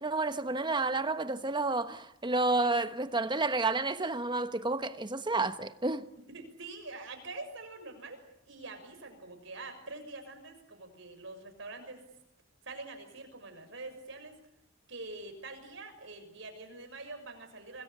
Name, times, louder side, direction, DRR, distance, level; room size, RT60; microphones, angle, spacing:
voice 1, 0.0-6.1, right 3 dB, 25° right, 1.1 m, -30 dB
voice 2, 6.3-12.0 12.6-14.4 14.9-17.8, right 3 dB, 70° right, 6.6 m, -45 dB
27.0 x 21.0 x 8.4 m
head